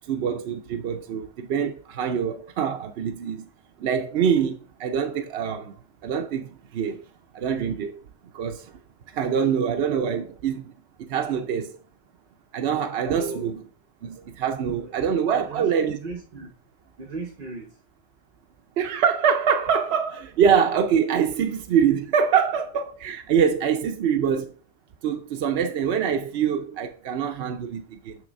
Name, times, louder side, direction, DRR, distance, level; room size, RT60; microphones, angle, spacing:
voice 1, 0.0-3.5 3.8-5.7 6.0-7.1 7.3-8.0 8.3-8.8 9.1-10.6 11.0-11.8 12.5-13.6 14.0-16.0 18.8-24.5 25.0-28.2, right 7 dB, 65° right, 0.8 m, -24 dB
voice 2, 15.3-16.5 17.0-17.7, right 3 dB, 50° right, 1.2 m, -37 dB
9.1 x 3.3 x 5.2 m
omnidirectional pair, 1.2 m